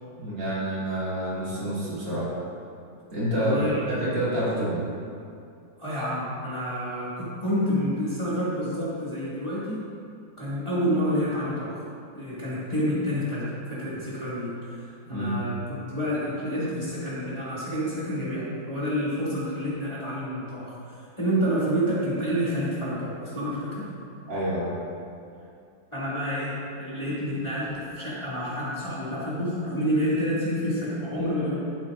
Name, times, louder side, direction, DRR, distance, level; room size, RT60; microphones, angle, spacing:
voice 1, 0.2-2.3 3.1-4.9 15.1-15.4 24.3-24.8, equal, 70° right, -9 dB, 3.1 m, -28 dB
voice 2, 3.4-3.8 5.8-9.8 10.4-11.8 12.1-23.8 25.9-31.6, equal, 15° left, -11 dB, 2.2 m, -28 dB
11.5 x 8.6 x 2.6 m, 2.5 s
omnidirectional pair, 2.0 m